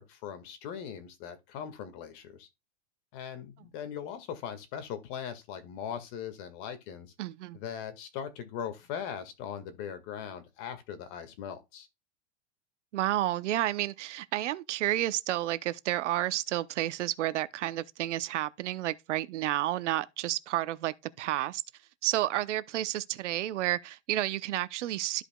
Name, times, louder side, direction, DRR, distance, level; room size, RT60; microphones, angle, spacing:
voice 1, 0.0-2.5 3.1-7.1 7.5-11.9, left 8 dB, 45° left, 1.9 m, -40 dB
voice 2, 7.2-7.6 12.9-21.6 22.0-25.2, right 14 dB, 85° right, 0.8 m, -31 dB
13.0 x 5.1 x 2.3 m
supercardioid pair, 145°, 35 cm